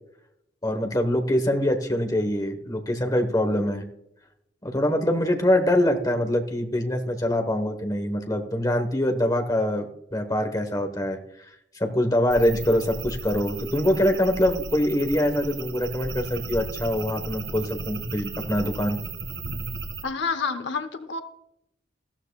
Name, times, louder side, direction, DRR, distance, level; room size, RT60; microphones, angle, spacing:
voice 1, 0.6-3.8 4.6-11.2 11.8-19.0, left 1 dB, 20° left, 5 dB, 1.2 m, -24 dB
sound 1, 12.3-20.0, right 4 dB, 85° right, 2.2 m, -35 dB
voice 2, 20.0-21.2, left 5 dB, 70° left, 9 dB, 0.9 m, -28 dB
14.5 x 13.5 x 2.3 m, 0.79 s
head